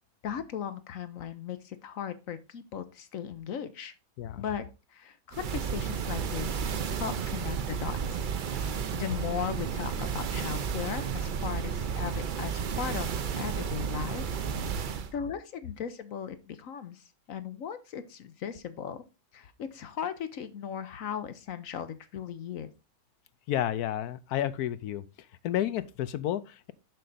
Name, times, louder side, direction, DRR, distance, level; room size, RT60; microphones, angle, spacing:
voice 1, 0.2-3.9 4.4-4.6 4.9-6.5 7.0-14.3 14.7-19.0 19.3-22.7, left 8 dB, 65° left, 1.1 m, -37 dB
sound 1, 5.3-15.1, right 7 dB, 75° right, 0.4 m, -32 dB
voice 2, 23.5-25.0 25.4-26.7, left 11 dB, 80° left, 1.1 m, -31 dB
6.7 x 6.3 x 4.0 m
omnidirectional pair, 1.6 m